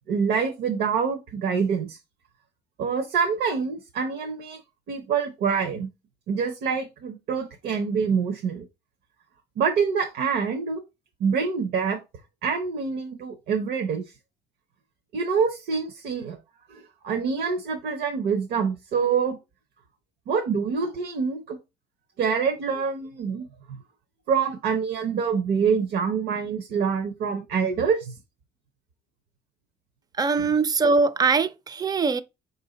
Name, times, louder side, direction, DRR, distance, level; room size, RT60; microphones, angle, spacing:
voice 1, 0.1-2.0 2.8-4.6 4.9-5.9 6.3-8.6 9.6-10.8 11.2-12.0 12.4-14.0 15.1-16.4 16.7-19.4 20.3-21.6 22.2-23.5 24.3-28.1, right 6 dB, 70° right, 0.9 m, -26 dB
voice 2, 30.2-32.2, right 4 dB, 25° right, 0.4 m, -22 dB
4.9 x 2.7 x 3.9 m
cardioid pair, 110°, 17 cm